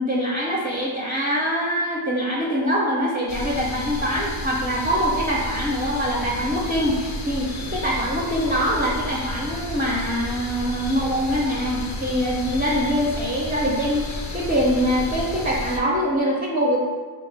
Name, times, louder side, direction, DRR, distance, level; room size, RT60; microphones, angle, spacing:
voice 1, 0.0-16.8, equal, 20° right, -4 dB, 0.4 m, -24 dB
sound 1, 3.3-15.8, left 1 dB, 40° left, 0.4 m, -32 dB
3.4 x 2.2 x 3.2 m, 1.5 s
wide cardioid pair, 60°, 48 cm